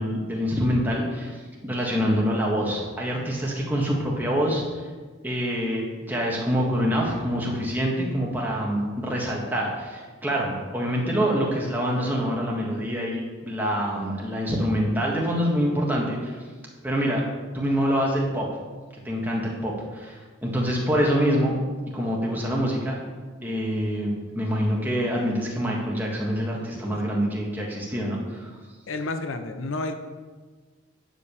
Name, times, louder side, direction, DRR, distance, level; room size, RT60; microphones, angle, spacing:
voice 1, 0.0-4.6 5.2-16.4 16.8-17.2 17.5-18.5 19.0-21.5 21.9-22.9 23.4-28.5, equal, 10° right, -3 dB, 1.6 m, -26 dB
voice 2, 28.9-29.9, left 2 dB, 75° left, 8 dB, 0.7 m, -30 dB
9.6 x 5.2 x 6.8 m, 1.4 s
head